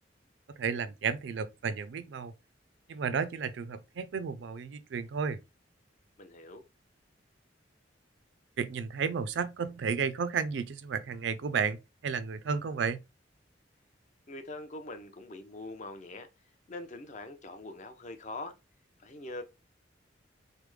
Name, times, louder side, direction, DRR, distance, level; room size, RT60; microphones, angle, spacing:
voice 1, 0.6-2.3 2.9-5.4 8.6-13.0, right 6 dB, 70° right, 0.4 m, -32 dB
voice 2, 6.2-6.6 14.3-16.3 16.7-18.6 19.0-19.4, left 2 dB, 40° left, 0.5 m, -43 dB
3.3 x 2.0 x 3.1 m
head